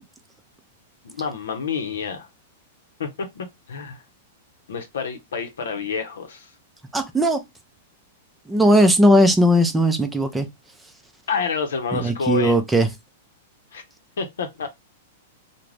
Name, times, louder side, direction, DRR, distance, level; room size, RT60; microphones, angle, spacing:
voice 1, 1.0-2.3 3.0-4.0 4.7-6.5 11.3-12.6 13.7-13.8 14.2-14.7, left 5 dB, 85° left, 0.7 m, -28 dB
voice 2, 6.9-7.4 8.5-10.5 11.9-12.9, equal, 5° right, 0.5 m, -17 dB
2.4 x 2.1 x 3.2 m
hypercardioid pair, 130°, 0 cm